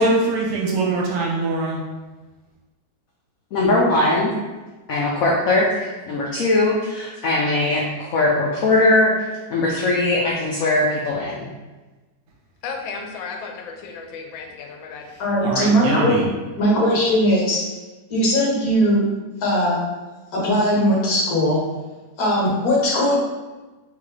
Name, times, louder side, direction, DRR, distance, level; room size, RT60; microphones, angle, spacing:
voice 1, 0.0-1.8 15.4-16.2, right 3 dB, 70° right, -3 dB, 1.3 m, -23 dB
voice 2, 3.5-4.3 4.9-9.1 9.5-11.5, left 2 dB, 70° left, -3 dB, 0.8 m, -20 dB
voice 3, 12.6-15.2, left 5 dB, 90° left, 3 dB, 1.4 m, -34 dB
voice 4, 15.2-16.2 16.6-17.6 18.1-19.0 19.4-19.8 20.3-21.6 22.2-23.2, equal, 55° left, -4 dB, 1.4 m, -19 dB
3.8 x 3.2 x 3.2 m, 1.2 s
omnidirectional pair, 2.1 m